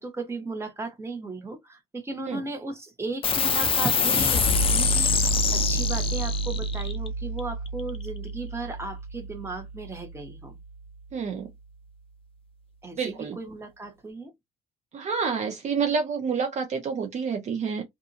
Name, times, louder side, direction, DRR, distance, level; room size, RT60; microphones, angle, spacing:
voice 1, 0.0-5.1 5.5-10.6 12.8-14.3, right 3 dB, 15° right, 1.1 m, -35 dB
sound 1, 3.2-10.1, left 3 dB, 35° left, 0.5 m, -26 dB
voice 2, 11.1-11.5 13.0-13.4 14.9-17.8, right 5 dB, 45° right, 0.7 m, -28 dB
2.6 x 2.4 x 2.6 m
cardioid pair, 110°, 17 cm